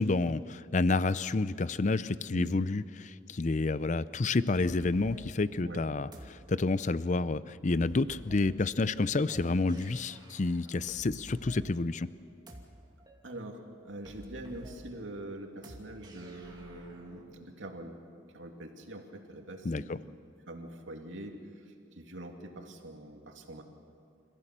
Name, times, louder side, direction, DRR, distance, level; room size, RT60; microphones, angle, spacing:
voice 1, 0.0-12.1 19.6-20.0, left 3 dB, 40° left, 16 dB, 0.5 m, -29 dB
sound 1, 4.5-17.2, equal, 20° right, 2.5 m, -51 dB
voice 2, 13.2-18.0 18.3-20.2 20.5-23.6, right 1 dB, 80° right, 3 dB, 2.6 m, -44 dB
28.5 x 15.5 x 7.4 m, 2.6 s
head